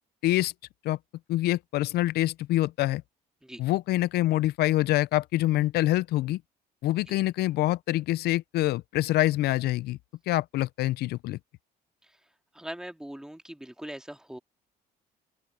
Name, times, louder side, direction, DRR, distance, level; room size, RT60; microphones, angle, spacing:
voice 1, 1.3-3.0 3.6-6.4 6.8-10.0 10.3-11.4, left 16 dB, 70° left, 0.4 m, -25 dB
voice 2, 12.5-14.4, right 1 dB, 5° right, 2.1 m, -41 dB
open air
cardioid pair, 110°, 17 cm